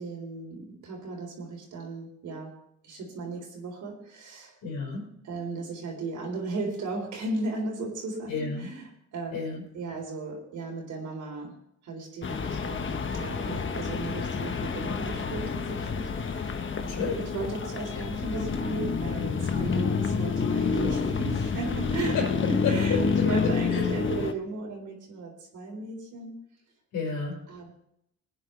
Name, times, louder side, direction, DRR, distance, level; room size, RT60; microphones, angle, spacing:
voice 1, 0.0-2.5 2.8-4.6 5.2-11.5 11.8-26.3 27.5-27.7, right 3 dB, 75° right, -1 dB, 3.8 m, -36 dB
voice 2, 4.6-5.1 8.3-8.7 9.3-9.6 16.9-17.3 22.1-22.3 22.6-23.9 26.9-27.5, left 4 dB, 80° left, -2 dB, 5.5 m, -31 dB
sound 1, 12.2-24.3, left 5 dB, 40° left, 1.3 m, -28 dB
21.0 x 9.3 x 3.4 m, 0.75 s
cardioid pair, 90°, 30 cm